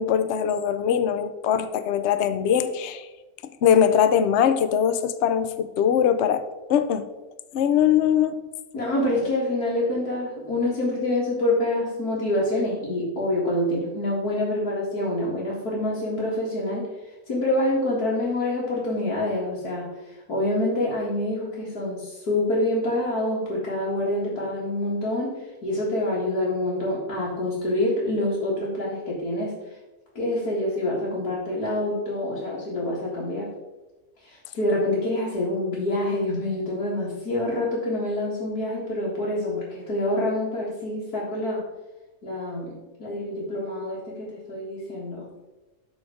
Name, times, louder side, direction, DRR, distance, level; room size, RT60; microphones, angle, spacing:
voice 1, 0.0-3.1 3.6-6.4 6.7-7.0 7.5-8.4, left 8 dB, 60° left, 10 dB, 0.8 m, -21 dB
voice 2, 8.7-16.9 17.3-19.9 20.3-25.4 25.6-29.5 30.2-33.5 34.3-41.6 42.2-42.7 43.0-45.3, left 1 dB, 85° left, -8 dB, 2.5 m, -26 dB
12.5 x 4.1 x 5.0 m, 1.1 s
omnidirectional pair, 1.6 m